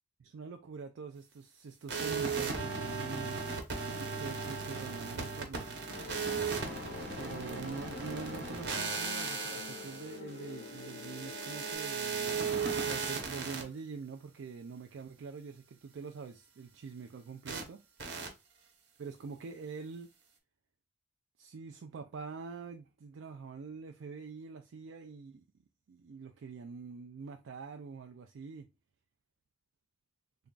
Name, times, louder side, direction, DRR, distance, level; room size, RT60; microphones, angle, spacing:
voice 1, 0.2-3.4 3.9-5.9 7.2-12.4 12.7-17.8 19.0-20.1 21.4-25.4 25.9-28.7, right 5 dB, 90° right, 0.4 m, -45 dB
sound 1, 1.9-13.6 17.5-17.6 18.0-18.3, right 5 dB, 60° right, 0.9 m, -36 dB
sound 2, 5.9-11.7, left 5 dB, 55° left, 0.4 m, -47 dB
3.5 x 2.3 x 3.7 m
head